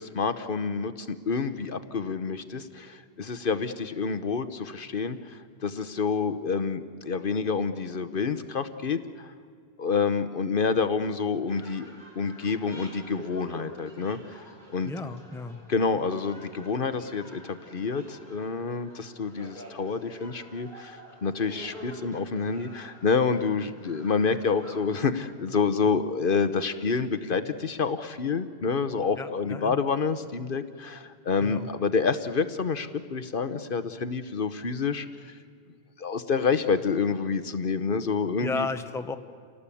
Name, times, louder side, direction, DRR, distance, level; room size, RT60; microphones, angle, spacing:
voice 1, 0.0-5.2 5.6-9.3 9.8-14.4 14.7-14.9 15.7-35.1 36.0-38.7, left 5 dB, 60° left, 11 dB, 1.1 m, -28 dB
sound 1, 11.5-24.8, right 1 dB, 50° right, 4.6 m, -48 dB
voice 2, 14.8-15.6 29.2-29.8 31.4-31.7 38.4-39.2, left 3 dB, 5° left, 8 dB, 0.8 m, -33 dB
28.0 x 18.0 x 8.5 m, 2.1 s
omnidirectional pair, 1.1 m